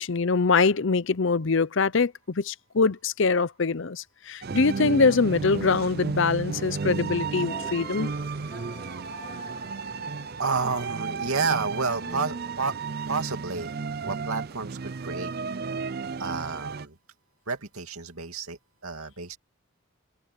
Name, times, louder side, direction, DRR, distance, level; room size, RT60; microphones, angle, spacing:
voice 1, 0.0-8.1, left 4 dB, 60° left, 0.6 m, -23 dB
sound 1, 4.4-16.9, right 4 dB, 45° right, 0.5 m, -33 dB
sound 2, 7.4-13.1, left 3 dB, 30° left, 2.7 m, -47 dB
voice 2, 10.4-12.8 13.1-13.8 14.0-15.3 16.2-17.0 17.5-19.4, right 4 dB, 85° right, 2.6 m, -30 dB
open air
head